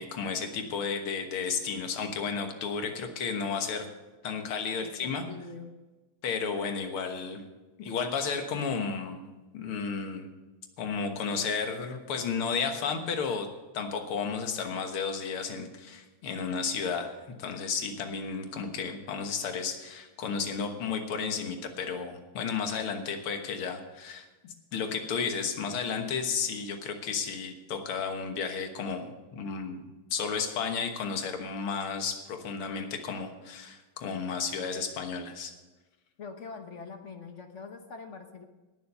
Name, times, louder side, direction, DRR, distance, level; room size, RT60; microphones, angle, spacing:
voice 1, 0.0-3.9 4.2-5.2 6.2-7.4 7.8-9.2 9.5-10.3 10.8-13.5 13.7-29.9 30.1-35.5, left 5 dB, 80° left, 5 dB, 2.2 m, -33 dB
voice 2, 4.8-5.7 36.2-38.5, left 4 dB, 45° left, 6 dB, 1.0 m, -44 dB
18.5 x 7.1 x 5.5 m, 1.2 s
omnidirectional pair, 2.4 m